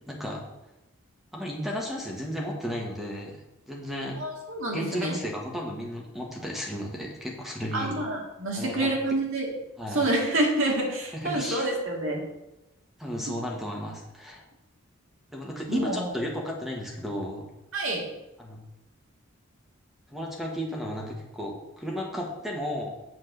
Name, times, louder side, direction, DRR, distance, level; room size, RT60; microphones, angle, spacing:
voice 1, 0.1-0.5 1.3-3.4 3.7-4.2 4.7-7.9 8.6-8.9 9.8-10.1 11.1-11.7 13.0-14.4 15.3-17.4 18.4-18.6 20.1-22.9, equal, ahead, -1 dB, 1.3 m, -33 dB
voice 2, 4.2-5.2 7.7-9.5 9.9-12.2 15.7-16.1 17.7-18.1, right 2 dB, 65° right, -1 dB, 2.1 m, -27 dB
7.8 x 4.3 x 6.7 m, 0.95 s
head